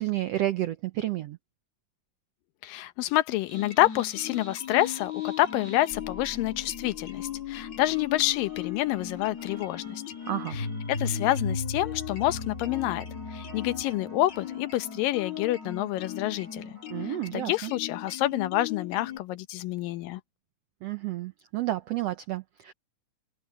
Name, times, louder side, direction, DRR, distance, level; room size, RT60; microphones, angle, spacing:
voice 1, 0.0-1.4 10.3-10.6 16.9-17.7 20.8-22.7, right 14 dB, 85° right, 1.4 m, -31 dB
voice 2, 2.6-10.0 10.5-16.8 17.0-20.2, left 15 dB, 85° left, 2.6 m, -28 dB
sound 1, 3.5-19.2, left 10 dB, 55° left, 3.5 m, -39 dB
sound 2, 3.5-14.1, left 2 dB, 20° left, 3.8 m, -39 dB
sound 3, 8.2-17.3, right 2 dB, 25° right, 3.7 m, -53 dB
open air
omnidirectional pair, 3.9 m